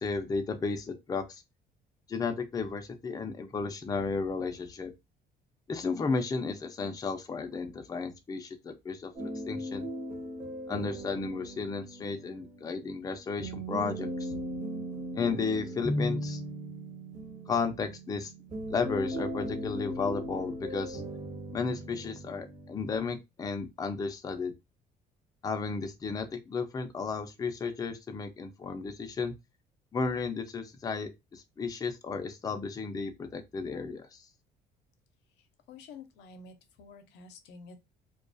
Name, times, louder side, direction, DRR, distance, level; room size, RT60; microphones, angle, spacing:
voice 1, 0.0-1.4 2.1-4.9 5.7-9.9 10.7-14.3 15.1-16.4 17.5-18.3 18.7-21.0 21.5-24.5 25.4-29.3 29.9-34.2, left 4 dB, 20° left, 0.4 m, -33 dB
sound 1, 9.1-22.9, equal, 40° right, 1.2 m, -38 dB
voice 2, 35.4-37.8, left 4 dB, 90° left, 0.6 m, -50 dB
2.3 x 2.3 x 2.5 m
cardioid pair, 110°, 17 cm